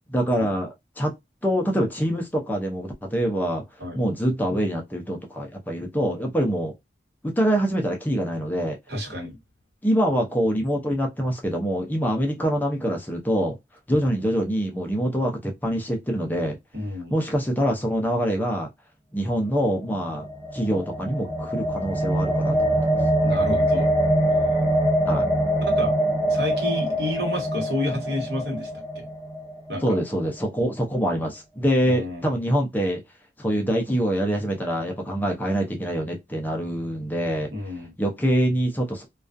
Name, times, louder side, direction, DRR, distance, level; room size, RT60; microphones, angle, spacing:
voice 1, 0.1-1.1 1.4-3.6 3.9-6.7 7.2-8.8 9.8-13.6 13.9-16.6 17.1-18.7 19.1-20.3 20.5-22.7 25.1-25.3 29.8-33.0 33.4-37.5 38.0-39.1, equal, 10° left, 0.4 m, -25 dB
voice 2, 8.9-9.4 13.9-14.0 16.7-17.2 23.2-23.9 25.7-25.9 26.3-28.7 28.9-29.0 29.7-30.0 31.9-32.3 37.5-37.9, left 1 dB, 65° right, 1.1 m, -30 dB
sound 1, 19.8-30.0, right 1 dB, 10° right, 1.3 m, -24 dB
2.3 x 2.3 x 2.4 m
head